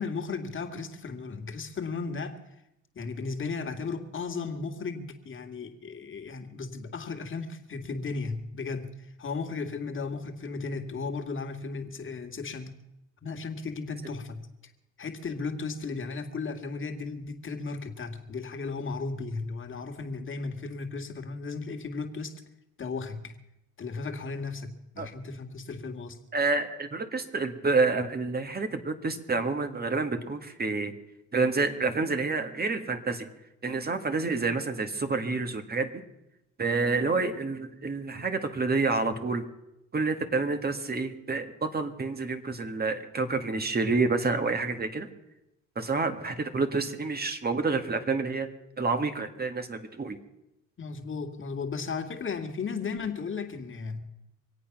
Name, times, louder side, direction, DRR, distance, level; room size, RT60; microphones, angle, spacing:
voice 1, 0.0-2.4 2.9-12.8 13.2-14.5 15.0-22.4 22.8-23.3 23.8-26.2 50.8-54.0, left 4 dB, 40° left, 4 dB, 2.1 m, -35 dB
voice 2, 26.3-30.9 31.3-33.3 33.6-36.0 36.6-39.5 39.9-45.1 45.8-48.5 48.8-50.2, right 3 dB, 30° right, 8 dB, 1.8 m, -28 dB
24.5 x 8.7 x 6.0 m, 0.89 s
cardioid pair, 90°, 30 cm